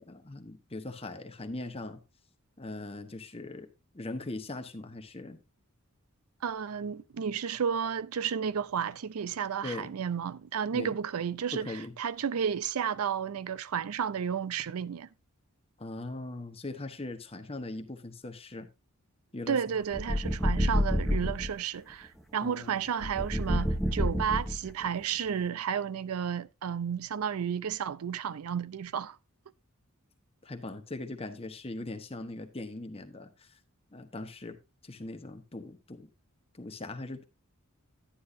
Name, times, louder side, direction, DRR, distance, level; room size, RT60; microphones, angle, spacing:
voice 1, 0.0-2.0 2.6-3.7 3.9-5.4 9.6-9.9 10.7-11.0 11.5-12.0 15.8-18.7 19.3-19.6 22.4-22.8 30.4-33.6 33.9-34.6 34.8-36.1 36.5-37.3, left 2 dB, 25° left, 1.1 m, -40 dB
voice 2, 6.4-15.1 19.5-29.2, right 7 dB, 85° right, 0.5 m, -32 dB
sound 1, 19.9-21.5 23.0-24.8, equal, ahead, 1.1 m, -28 dB
11.5 x 9.5 x 2.6 m
head